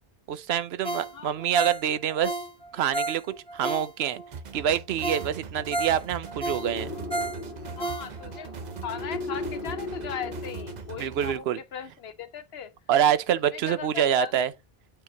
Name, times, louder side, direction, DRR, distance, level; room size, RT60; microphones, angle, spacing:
voice 1, 0.3-2.4 2.7-3.2 3.5-4.2 4.5-6.9 11.0-11.6 12.9-14.5, right 9 dB, 85° right, 0.9 m, -26 dB
Ringtone, 0.8-4.3 4.7-4.8 5.0-8.5 8.9-9.0, right 2 dB, 5° left, 1.9 m, -32 dB
voice 2, 1.1-1.5 7.8-8.5 8.8-12.7 13.5-14.4, left 8 dB, 80° left, 1.1 m, -38 dB
sound 1, 4.3-11.4, right 5 dB, 50° right, 0.7 m, -41 dB
sound 2, 6.6-11.2, left 2 dB, 60° left, 1.4 m, -37 dB
8.9 x 3.8 x 2.8 m
omnidirectional pair, 1.0 m